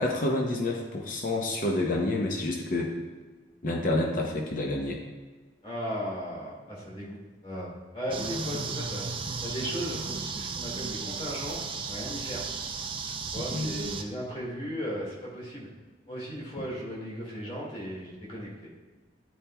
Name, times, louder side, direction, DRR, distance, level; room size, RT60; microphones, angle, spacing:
voice 1, 0.0-2.9 3.6-5.0 13.5-13.7, left 2 dB, 50° left, 0 dB, 0.7 m, -28 dB
voice 2, 5.6-9.1 9.4-12.4 13.3-15.7 16.1-18.5, equal, 30° left, -4 dB, 1.8 m, -36 dB
sound 1, 8.1-14.0, right 4 dB, 30° right, 0.4 m, -35 dB
10.5 x 4.2 x 2.2 m, 1.4 s
head